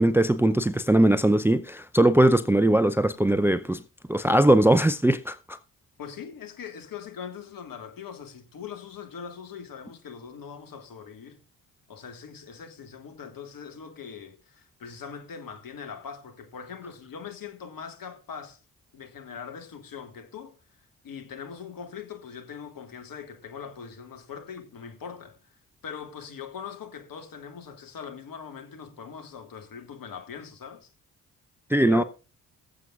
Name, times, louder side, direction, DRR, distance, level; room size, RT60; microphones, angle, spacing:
voice 1, 0.0-3.8 4.1-5.6 31.7-32.0, right 1 dB, 5° right, 0.6 m, -20 dB
voice 2, 6.0-11.4 11.9-18.6 18.9-20.6 21.0-30.9 31.8-32.0, left 7 dB, 55° left, 1.8 m, -41 dB
22.0 x 7.5 x 2.5 m
hypercardioid pair, 40°, 41 cm